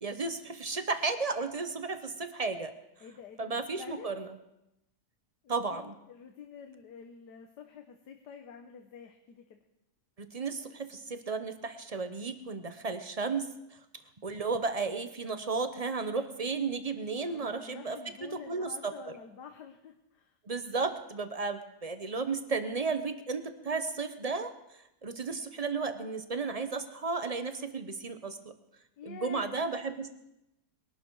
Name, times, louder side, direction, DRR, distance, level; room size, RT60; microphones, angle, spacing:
voice 1, 0.0-2.7 3.4-4.3 5.5-5.9 10.2-13.5 14.2-18.9 20.5-24.5 25.0-28.5 29.0-30.1, right 4 dB, 35° right, 9 dB, 0.6 m, -34 dB
voice 2, 3.0-4.1 5.4-9.6 17.2-20.3 29.0-30.0, left 6 dB, 80° left, 4 dB, 1.6 m, -48 dB
21.0 x 12.0 x 4.7 m, 0.88 s
omnidirectional pair, 1.8 m